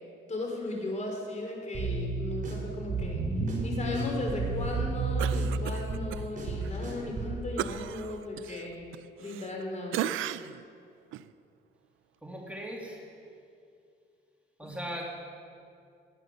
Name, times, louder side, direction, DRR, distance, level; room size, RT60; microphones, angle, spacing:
voice 1, 0.3-3.2 3.6-8.8 9.2-10.0, left 2 dB, 35° left, 0 dB, 4.2 m, -36 dB
sound 1, 1.7-7.4, right 3 dB, 40° right, 4.8 m, -31 dB
Cough, 5.2-6.2 6.6-6.8 7.6-9.6 9.9-10.6 11.1-11.3, right 12 dB, 90° right, 0.5 m, -35 dB
voice 2, 12.2-13.1 14.6-15.0, equal, 5° right, -2 dB, 2.0 m, -38 dB
19.0 x 9.8 x 6.6 m, 2.4 s
cardioid pair, 90°, 20 cm